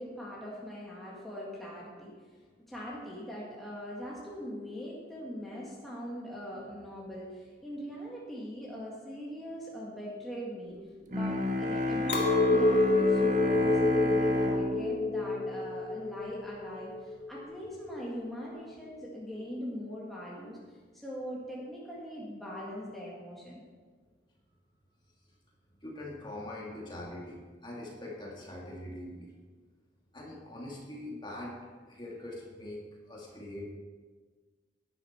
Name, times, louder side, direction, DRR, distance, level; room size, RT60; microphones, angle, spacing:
voice 1, 0.0-10.8 11.1-20.6 20.9-23.6, equal, ahead, -6 dB, 1.7 m, -41 dB
voice 2, 10.7-11.1 25.8-29.3 30.1-31.6 31.9-33.7, left 1 dB, 25° left, -3 dB, 2.1 m, -43 dB
Bowed string instrument, 11.1-16.4, left 1 dB, 45° right, 1.1 m, -31 dB
Chink clink, 12.1-17.5, left 3 dB, 80° left, 2.1 m, -28 dB
11.0 x 10.5 x 4.4 m, 1.5 s
head